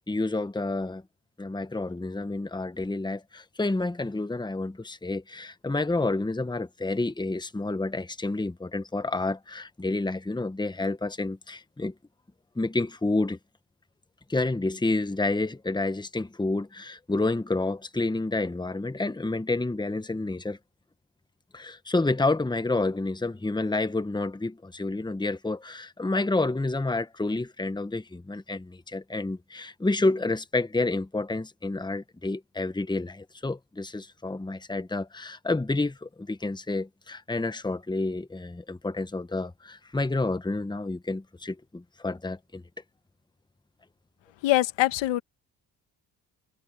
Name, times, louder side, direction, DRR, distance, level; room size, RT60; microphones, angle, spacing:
voice 1, 0.1-1.0 1.4-11.9 12.5-13.4 14.3-20.6 21.5-42.6, left 2 dB, 10° left, 1.3 m, -29 dB
voice 2, 44.4-45.2, left 16 dB, 80° left, 1.9 m, -23 dB
supercardioid pair, 60°, 44 cm